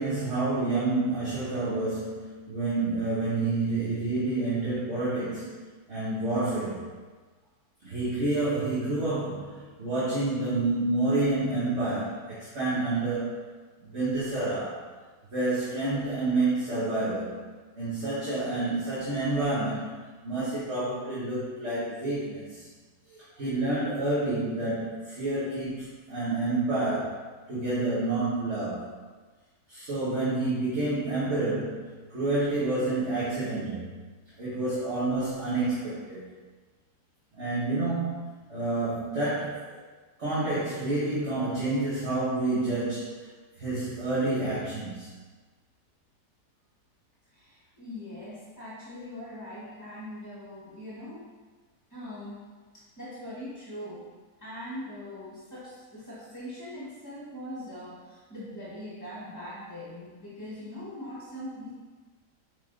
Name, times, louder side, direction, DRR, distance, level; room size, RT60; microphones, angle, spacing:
voice 1, 0.0-6.9 7.8-13.3 13.8-14.8 15.3-17.5 17.8-20.0 20.2-22.7 23.1-27.2 27.5-28.9 29.7-33.9 34.4-36.3 37.4-38.2 38.5-39.8 40.2-43.3 43.6-45.1, right 2 dB, 45° right, -10 dB, 1.9 m, -29 dB
voice 2, 47.3-51.3 51.9-52.4 52.7-54.1 54.4-61.7, left 1 dB, 10° left, -8 dB, 1.2 m, -41 dB
8.6 x 3.9 x 3.9 m, 1.4 s
omnidirectional pair, 1.7 m